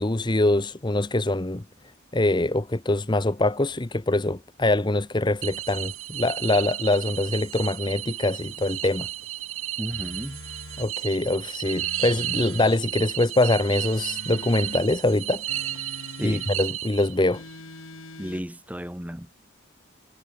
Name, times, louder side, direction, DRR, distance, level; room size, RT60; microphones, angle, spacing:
voice 1, 0.0-1.6 2.1-9.1 10.8-15.4 16.2-17.4, left 2 dB, 20° left, 0.8 m, -24 dB
sound 1, 5.4-17.4, right 14 dB, 80° right, 3.1 m, -33 dB
voice 2, 9.8-10.4 16.2-16.5 18.2-19.3, equal, 5° right, 2.4 m, -33 dB
sound 2, 9.9-10.9 11.6-12.8 13.6-14.8 15.5-16.6 17.3-18.5, left 2 dB, 80° left, 3.4 m, -43 dB
head